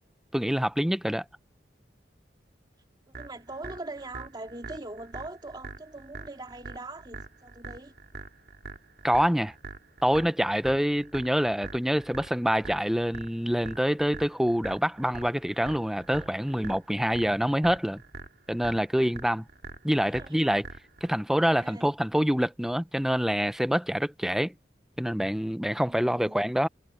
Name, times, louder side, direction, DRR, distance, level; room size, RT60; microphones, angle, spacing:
voice 1, 0.3-1.2 9.0-9.5 10.0-18.0 18.5-19.4 19.8-20.7 21.0-24.5 25.0-26.7, equal, ahead, 0.6 m, -26 dB
voice 2, 3.1-7.9 20.1-20.6 21.1-21.9 25.9-26.4, right 2 dB, 25° right, 2.7 m, -42 dB
sound 1, 3.1-21.1, right 3 dB, 60° right, 3.4 m, -44 dB
head